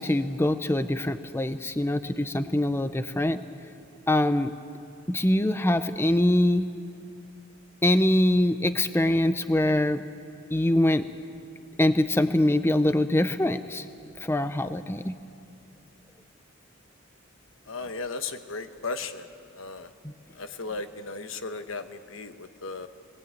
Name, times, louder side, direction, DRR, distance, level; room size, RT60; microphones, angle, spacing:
voice 1, 0.0-3.4 4.1-4.5 5.1-6.7 7.8-10.0 10.5-11.1 11.8-13.9 14.2-15.1 20.0-20.1, left 1 dB, 10° left, 10 dB, 0.5 m, -23 dB
voice 2, 17.7-19.3 19.6-19.9 20.4-22.9, left 3 dB, 75° left, 8 dB, 1.2 m, -35 dB
20.0 x 19.0 x 8.9 m, 2.5 s
head